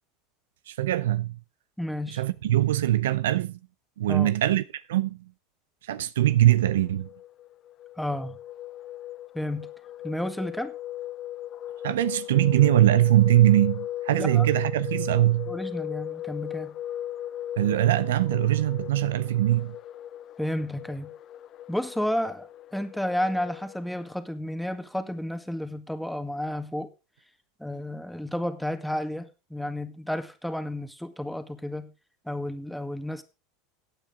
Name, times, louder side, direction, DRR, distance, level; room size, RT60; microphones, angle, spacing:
voice 1, 0.7-1.4 2.1-3.6 4.0-5.3 5.9-7.1 11.8-15.5 17.6-19.8, right 14 dB, 85° right, 0.7 m, -22 dB
voice 2, 1.8-2.2 4.1-4.3 8.0-8.4 9.3-9.7 10.0-10.7 14.2-14.5 15.5-16.7 20.4-21.1 21.7-26.9 27.6-31.9 32.3-33.2, left 1 dB, ahead, 1.8 m, -31 dB
sound 1, 6.4-24.2, left 12 dB, 45° left, 0.7 m, -38 dB
16.0 x 8.9 x 3.7 m
hypercardioid pair, 95°, 0 cm